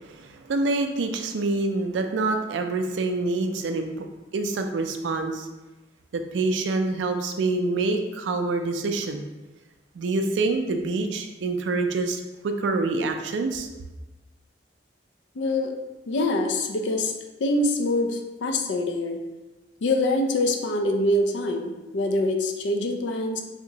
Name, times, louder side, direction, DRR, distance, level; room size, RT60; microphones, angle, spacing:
voice 1, 0.1-4.1 4.3-5.5 6.1-9.2 10.0-13.7, right 3 dB, 85° right, 6 dB, 0.4 m, -26 dB
voice 2, 15.4-15.7 16.1-17.1 17.4-19.2 19.8-23.4, left 1 dB, 85° left, 4 dB, 0.4 m, -24 dB
3.4 x 2.9 x 2.7 m, 1.1 s
head